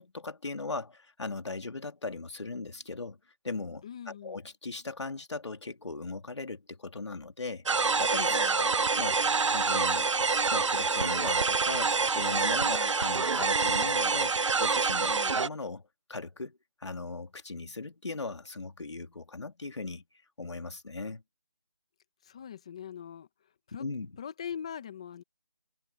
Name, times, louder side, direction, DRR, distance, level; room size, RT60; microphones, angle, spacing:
voice 1, 0.0-3.2 3.4-8.7 9.0-9.2 9.5-10.1 10.5-14.3 14.6-15.8 16.1-20.0 20.4-21.2 23.8-24.1, left 3 dB, 70° left, 2.7 m, -38 dB
voice 2, 3.8-4.4 8.3-8.6 12.7-12.9 15.1-15.4 22.2-23.3 23.7-23.8 24.2-25.2, left 8 dB, 10° left, 0.9 m, -42 dB
sound 1, 7.7-15.5, right 4 dB, 85° right, 0.6 m, -26 dB
figure-of-eight pair, 175°, 15 cm